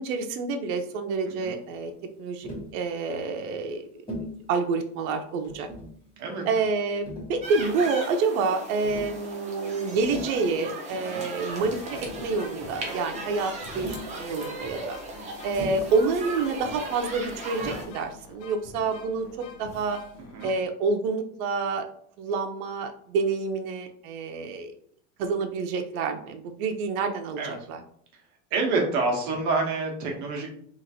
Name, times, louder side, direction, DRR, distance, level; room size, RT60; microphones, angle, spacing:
voice 1, 0.0-1.9 2.2-4.0 4.5-5.7 6.5-15.0 15.4-19.3 19.6-20.0 20.4-21.9 22.2-24.7 25.2-27.8, right 4 dB, 85° right, 5 dB, 0.6 m, -28 dB
Tap, 2.4-2.7 4.1-4.4 5.4-6.0 7.0-7.8 8.8-9.2 9.9-10.4 11.6-11.7 11.9-12.4 13.7-14.1 15.5-16.0 17.6-17.9, equal, 10° left, 1.1 m, -38 dB
sound 1, 7.4-17.8, right 2 dB, 20° right, 0.4 m, -37 dB
sound 2, 10.8-10.9 11.5-20.5, left 5 dB, 45° left, 0.4 m, -47 dB
voice 2, 10.9-11.2 20.3-20.5 27.4-27.6 28.5-30.5, right 3 dB, 45° right, 0 dB, 0.9 m, -27 dB
2.9 x 2.5 x 2.7 m, 0.62 s
supercardioid pair, 155°, 41 cm